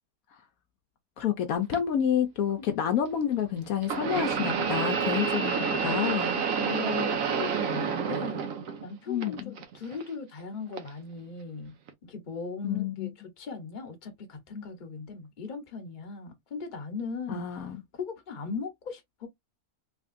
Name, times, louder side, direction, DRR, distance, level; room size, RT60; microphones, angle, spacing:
voice 1, 1.2-6.4 9.1-9.5 12.6-13.1 17.3-17.8, left 9 dB, 70° left, 1.0 m, -29 dB
sound 1, 1.7-1.8 3.8-8.9 9.2-10.0 10.8-10.9 11.9-12.0, right 6 dB, 65° right, 1.2 m, -29 dB
voice 2, 6.6-8.5 8.8-11.7 12.0-17.7 18.0-19.3, left 5 dB, 35° left, 1.0 m, -38 dB
3.5 x 3.4 x 2.5 m
omnidirectional pair, 1.6 m